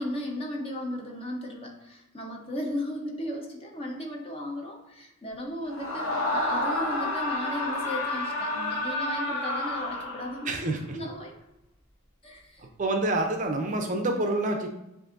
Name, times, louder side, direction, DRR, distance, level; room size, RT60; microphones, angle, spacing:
voice 1, 0.0-10.6 10.9-11.3 12.2-12.7, left 1 dB, 25° left, 1 dB, 0.7 m, -35 dB
Screaming, 5.7-10.6, left 2 dB, 65° left, 0.8 m, -30 dB
voice 2, 10.5-11.0 12.8-14.7, right 2 dB, 35° right, 4 dB, 0.4 m, -27 dB
7.5 x 2.6 x 2.5 m, 0.90 s
head